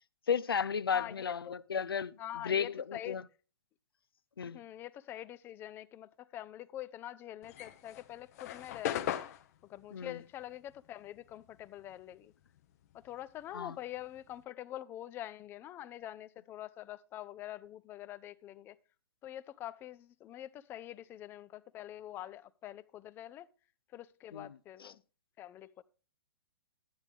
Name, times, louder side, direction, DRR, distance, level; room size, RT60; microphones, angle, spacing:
voice 1, 0.3-2.2 2.4-3.2 4.4-4.6 9.9-10.2 13.5-13.8 24.3-24.6 24.8-24.9, left 7 dB, 70° left, 0.5 m, -34 dB
voice 2, 0.9-1.5 2.2-3.2 4.5-9.1 9.7-12.3 12.9-18.8 19.2-23.5 23.9-25.0 25.4-25.8, left 13 dB, 20° left, 0.4 m, -45 dB
sound 1, 7.4-12.1 12.4-14.4, left 11 dB, 40° left, 0.8 m, -40 dB
12.0 x 9.3 x 3.4 m
figure-of-eight pair, 115°, 12 cm